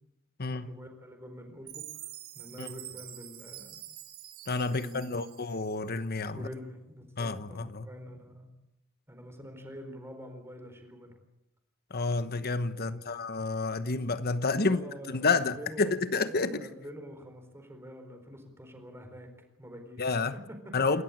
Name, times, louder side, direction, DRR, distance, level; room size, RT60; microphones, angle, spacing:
voice 1, 0.4-1.8 2.3-3.8 4.7-5.5 6.3-8.5 9.1-11.1 12.9-13.2 14.6-15.9 16.4-21.0, equal, 10° right, 4.4 m, -46 dB
Chime, 1.7-5.9, right 13 dB, 85° right, 3.1 m, -46 dB
voice 2, 4.5-6.5 7.2-7.9 11.9-14.8 15.1-16.5 20.0-20.3 20.7-21.0, left 3 dB, 50° left, 1.1 m, -29 dB
28.0 x 14.0 x 8.8 m
head